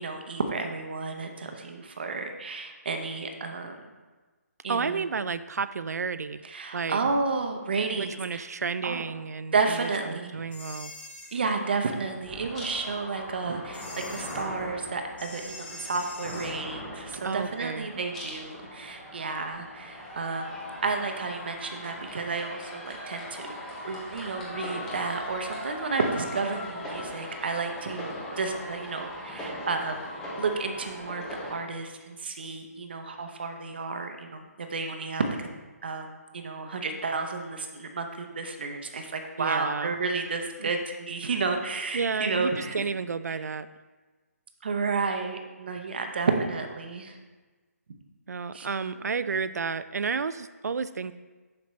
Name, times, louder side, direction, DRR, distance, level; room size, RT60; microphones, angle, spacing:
voice 1, 0.0-3.8 4.6-5.1 6.4-8.5 8.8-9.0 9.5-10.4 11.3-20.6 20.8-23.6 23.8-30.1 30.4-35.2 35.8-42.9 44.6-47.2 48.5-48.7, right 4 dB, 40° right, 5 dB, 0.7 m, -31 dB
voice 2, 4.7-6.4 6.7-7.0 7.9-10.9 17.2-17.9 39.4-40.0 40.6-40.7 41.9-43.7 48.3-51.2, right 5 dB, 80° right, 14 dB, 0.4 m, -31 dB
sound 1, 10.5-11.4 13.7-14.5 15.2-16.6, left 2 dB, 35° left, 0.9 m, -43 dB
sound 2, 12.2-31.6, left 1 dB, 5° left, 0.3 m, -39 dB
7.4 x 5.9 x 3.1 m, 1.3 s
hypercardioid pair, 175°, 9 cm